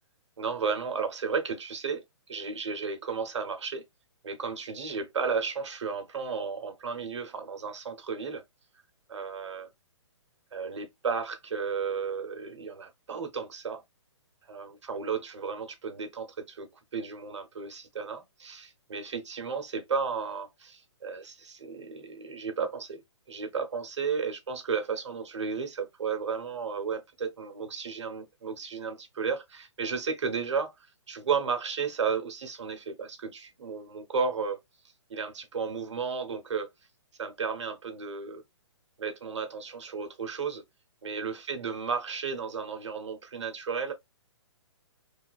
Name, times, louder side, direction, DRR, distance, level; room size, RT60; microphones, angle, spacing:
voice 1, 0.4-3.8 4.2-8.4 9.1-9.7 10.5-13.8 14.5-23.0 23.3-34.6 35.1-36.7 37.2-38.4 39.0-40.6 41.0-43.9, right 5 dB, 70° right, 0.8 m, -33 dB
2.7 x 2.3 x 2.3 m
hypercardioid pair, 135°, 16 cm